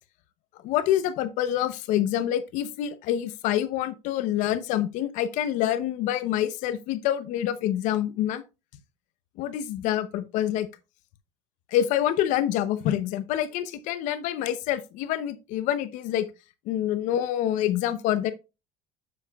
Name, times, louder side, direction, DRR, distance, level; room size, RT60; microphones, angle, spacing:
voice 1, 0.6-8.4 9.4-10.7 11.7-16.3 16.7-18.3, left 11 dB, 65° left, 0.7 m, -26 dB
7.9 x 7.3 x 2.3 m
supercardioid pair, 110°, 14 cm